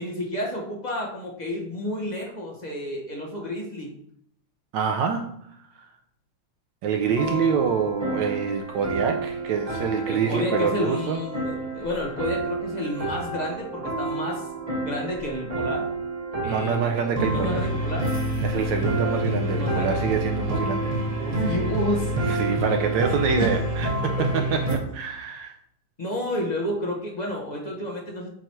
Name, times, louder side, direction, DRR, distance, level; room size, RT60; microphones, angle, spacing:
voice 1, 0.0-3.9 10.1-14.4 14.8-15.9 16.4-16.8 17.3-18.1 19.2-20.0 21.2-22.1 23.4-23.5 26.0-28.3, left 1 dB, 25° left, -2 dB, 1.0 m, -30 dB
voice 2, 4.7-5.3 5.8-5.9 6.8-11.2 16.4-17.7 18.4-21.5 22.2-23.9 24.3-25.5, right 6 dB, 75° right, 4 dB, 1.1 m, -26 dB
sound 1, 7.0-24.8, right 1 dB, 35° right, 0.6 m, -28 dB
7.7 x 3.1 x 4.5 m, 0.70 s
omnidirectional pair, 2.4 m